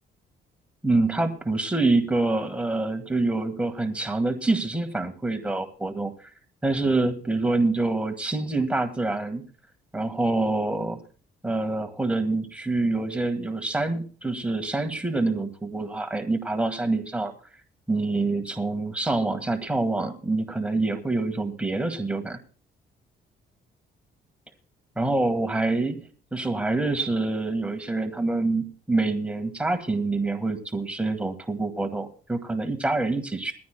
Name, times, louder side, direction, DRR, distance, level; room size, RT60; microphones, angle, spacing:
voice 1, 0.8-6.3 6.6-9.4 9.9-11.0 11.4-17.3 17.9-22.4 24.9-33.5, right 2 dB, 5° right, 6 dB, 1.7 m, -26 dB
20.5 x 15.0 x 2.2 m, 0.39 s
cardioid pair, 90°, 20 cm